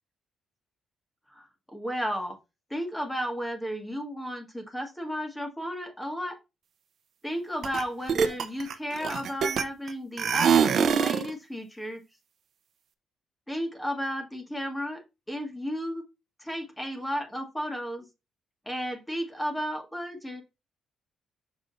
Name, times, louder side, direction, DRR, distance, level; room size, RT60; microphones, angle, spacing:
voice 1, 1.3-2.4 2.7-6.4 7.2-12.0 13.5-15.0 15.3-16.0 16.4-18.0 18.6-20.4, equal, 10° left, 1.5 m, -33 dB
sound 1, 7.6-7.8 8.1-9.9 10.2-11.3, right 7 dB, 60° right, 0.7 m, -23 dB
6.1 x 5.9 x 2.6 m
cardioid pair, 90°, 0 cm